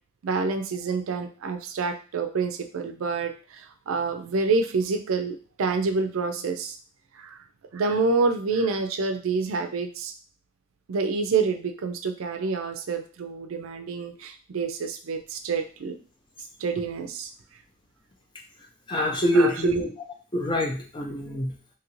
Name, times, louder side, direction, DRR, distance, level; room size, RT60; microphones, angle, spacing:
voice 1, 0.2-6.8 7.2-7.4 7.7-10.1 10.9-16.0 16.6-17.3 19.3-19.9, right 4 dB, 80° right, 7 dB, 0.4 m, -27 dB
voice 2, 18.9-19.9 20.3-21.6, equal, 20° left, 1 dB, 0.5 m, -25 dB
2.8 x 2.5 x 3.0 m, 0.38 s
head